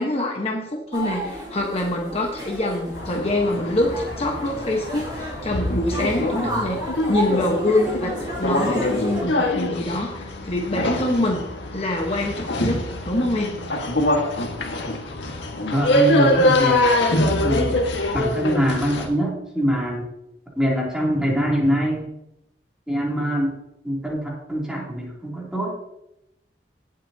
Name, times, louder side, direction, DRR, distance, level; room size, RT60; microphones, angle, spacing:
voice 1, 0.0-6.8 7.1-11.5 11.7-13.6, left 1 dB, 35° left, 0 dB, 1.2 m, -25 dB
sound 1, 0.9-9.2, right 1 dB, 25° right, 3.2 m, -32 dB
sound 2, 2.9-19.1, left 1 dB, 85° left, 1.7 m, -24 dB
voice 2, 15.7-16.8 17.4-17.8 18.1-20.1 20.6-22.0 22.9-23.5 23.8-25.7, equal, 5° right, -4 dB, 2.9 m, -23 dB
17.5 x 7.7 x 2.8 m, 0.87 s
head